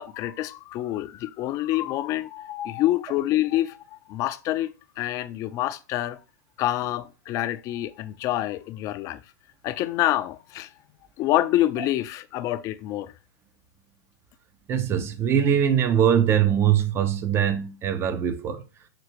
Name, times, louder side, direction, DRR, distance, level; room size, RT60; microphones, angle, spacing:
voice 1, 0.0-6.2 6.6-9.2 9.6-10.7 11.2-13.1, left 14 dB, 35° left, 0.4 m, -27 dB
voice 2, 14.7-18.6, right 9 dB, 25° right, 0.5 m, -22 dB
5.8 x 2.4 x 3.0 m
hypercardioid pair, 105°, 10 cm